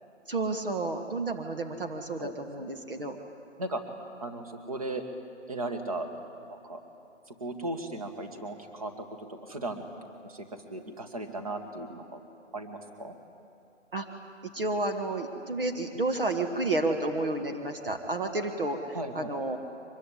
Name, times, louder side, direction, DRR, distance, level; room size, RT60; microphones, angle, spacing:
voice 1, 0.3-3.2 13.9-14.1 14.5-19.6, right 2 dB, 45° right, 5 dB, 1.8 m, -31 dB
voice 2, 4.2-5.0 5.5-6.1 6.5-6.8 7.4-9.9 10.2-12.2 12.5-13.2 18.9-19.3, right 2 dB, 30° right, 6 dB, 2.0 m, -36 dB
24.0 x 22.0 x 10.0 m, 2.6 s
hypercardioid pair, 175°, 38 cm